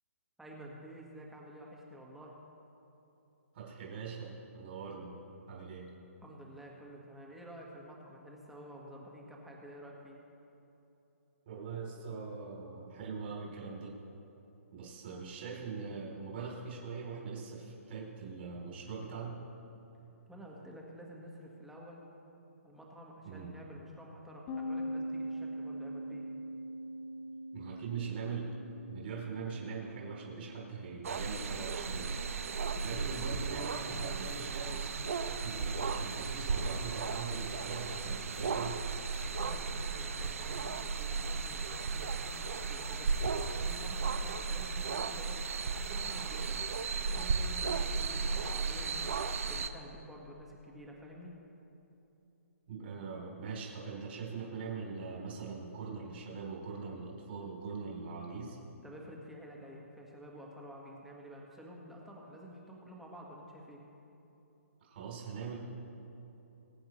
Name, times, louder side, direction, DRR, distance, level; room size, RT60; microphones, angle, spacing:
voice 1, 0.4-2.3 6.2-10.2 20.2-22.1 22.6-26.3 39.2-45.4 45.6-51.3 58.8-63.8, equal, 5° right, -2 dB, 1.5 m, -50 dB
voice 2, 3.5-5.1 5.5-5.9 11.4-14.0 14.7-19.4 23.2-23.5 27.5-28.5 28.9-32.2 32.8-35.0 35.3-38.8 52.7-58.6 64.8-65.6, right 5 dB, 45° right, -3 dB, 3.2 m, -42 dB
sound 1, 24.5-33.9, equal, 25° left, 1.4 m, -43 dB
sound 2, 31.0-49.7, right 4 dB, 65° right, 0.8 m, -35 dB
22.0 x 9.5 x 3.1 m, 3.0 s
hypercardioid pair, 160°, 8 cm